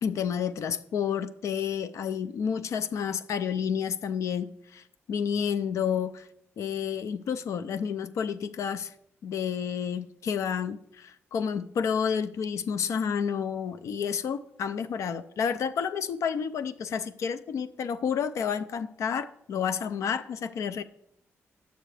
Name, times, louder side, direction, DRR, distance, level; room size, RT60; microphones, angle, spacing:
voice 1, 0.0-6.3 6.6-8.9 9.2-20.8, left 7 dB, 75° left, 11 dB, 0.5 m, -30 dB
8.9 x 7.8 x 3.3 m, 0.75 s
cardioid pair, 85°, 5 cm